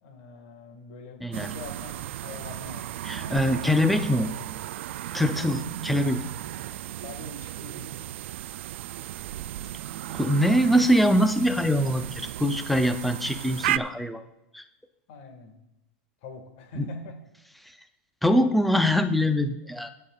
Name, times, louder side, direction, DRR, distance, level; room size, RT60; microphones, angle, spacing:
voice 1, 0.0-2.9 3.1-3.6 5.3-5.4 6.5-6.8 7.0-8.1 15.1-15.6 16.2-17.2 19.6-19.8, left 3 dB, 45° left, 5 dB, 1.9 m, -44 dB
voice 2, 1.2-1.5 3.1-4.3 5.1-6.2 10.1-14.2 14.5-14.6 16.8-16.9 18.2-19.9, equal, ahead, 8 dB, 0.4 m, -23 dB
sound 1, 1.3-13.8, right 14 dB, 65° right, 0.3 m, -35 dB
21.5 x 8.5 x 2.4 m, 0.90 s
supercardioid pair, 165°, 7 cm